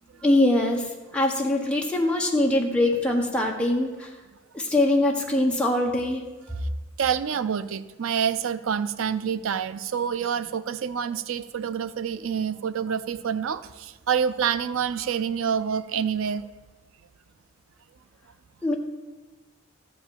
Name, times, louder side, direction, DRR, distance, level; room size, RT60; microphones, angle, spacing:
voice 1, 0.2-4.1 4.5-6.2 18.6-18.7, left 1 dB, 5° left, -1 dB, 1.4 m, -23 dB
voice 2, 7.0-16.5, right 7 dB, 70° right, 14 dB, 0.4 m, -27 dB
14.0 x 5.1 x 8.9 m, 1.3 s
head